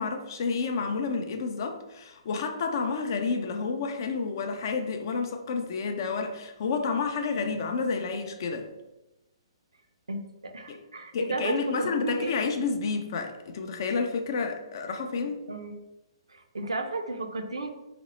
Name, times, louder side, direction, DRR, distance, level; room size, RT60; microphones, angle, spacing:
voice 1, 0.0-8.7 10.7-10.8 11.1-15.4, left 4 dB, 45° left, 5 dB, 0.4 m, -30 dB
voice 2, 10.1-12.3 15.5-15.7 16.3-17.7, right 3 dB, 75° right, 6 dB, 0.4 m, -33 dB
2.9 x 2.0 x 4.1 m, 0.99 s
figure-of-eight pair, 125°, 3 cm